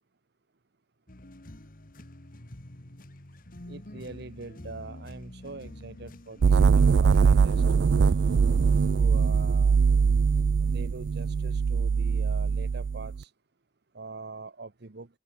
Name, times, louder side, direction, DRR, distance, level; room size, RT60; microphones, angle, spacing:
sound 1, 1.1-7.6, left 1 dB, 50° left, 2.1 m, -47 dB
voice 1, 3.7-7.6 7.9-8.2 8.9-9.8 10.6-13.3 13.9-15.1, right 3 dB, 65° right, 1.0 m, -43 dB
sound 2, 6.4-13.2, right 5 dB, 80° right, 0.4 m, -22 dB
head